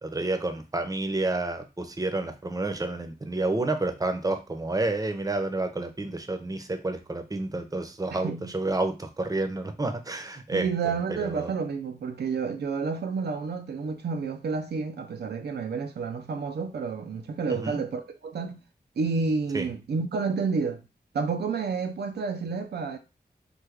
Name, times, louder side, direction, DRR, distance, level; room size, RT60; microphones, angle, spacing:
voice 1, 0.0-11.5 17.5-17.8 19.5-19.7, right 2 dB, 20° right, 0.6 m, -30 dB
voice 2, 8.1-8.5 10.5-18.6 19.0-20.8 21.1-23.0, right 5 dB, 85° right, 0.4 m, -30 dB
3.2 x 2.2 x 3.4 m
cardioid pair, 45°, 17 cm